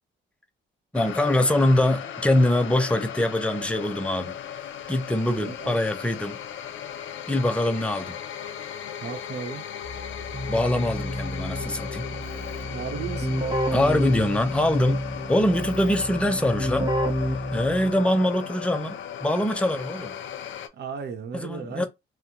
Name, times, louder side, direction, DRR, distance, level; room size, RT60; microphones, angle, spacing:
sound 1, 0.9-20.7, left 9 dB, 75° left, 0.6 m, -36 dB
voice 1, 0.9-4.4 4.9-6.4 7.3-8.2 10.5-12.1 12.4-12.5 13.7-16.9 17.2-20.2 21.3-21.9, left 1 dB, 5° left, 0.6 m, -24 dB
voice 2, 5.2-5.8 9.0-9.6 12.7-13.5 18.1-18.2 20.7-21.9, right 6 dB, 55° right, 0.8 m, -35 dB
Keyboard (musical), 9.8-18.1, equal, 25° right, 1.0 m, -30 dB
2.8 x 2.1 x 3.7 m
cardioid pair, 90°, 20 cm